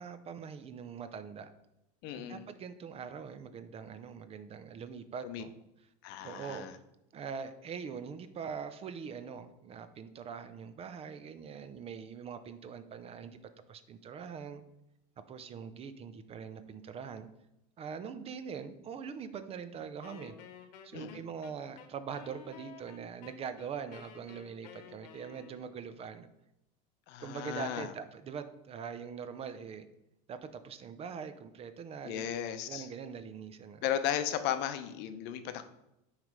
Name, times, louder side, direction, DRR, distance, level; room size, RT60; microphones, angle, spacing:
voice 1, 0.0-1.5 2.1-5.5 6.2-6.7 7.1-13.4 13.7-14.6 15.3-17.3 17.8-20.3 20.8-26.3 27.2-29.9 30.3-32.3 32.7-33.8, right 6 dB, 30° right, 11 dB, 0.5 m, -43 dB
voice 2, 2.0-2.4 5.2-5.4 6.0-6.7 20.9-21.2 27.1-27.9 32.0-32.9 33.8-35.6, left 10 dB, 60° left, 10 dB, 0.7 m, -35 dB
Wind instrument woodwind instrument, 20.0-25.8, left 6 dB, 80° left, 0.9 m, -53 dB
6.1 x 3.3 x 5.2 m, 0.85 s
supercardioid pair, 125°, 20 cm